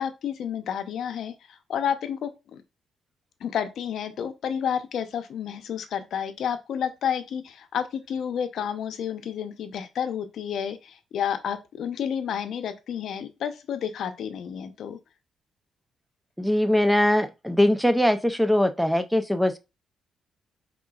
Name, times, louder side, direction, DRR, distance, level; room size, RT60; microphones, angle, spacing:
voice 1, 0.0-2.6 3.4-15.0, left 8 dB, 70° left, 0.7 m, -30 dB
voice 2, 16.4-19.6, left 1 dB, ahead, 0.5 m, -21 dB
5.0 x 3.7 x 2.3 m
cardioid pair, 90°, 0 cm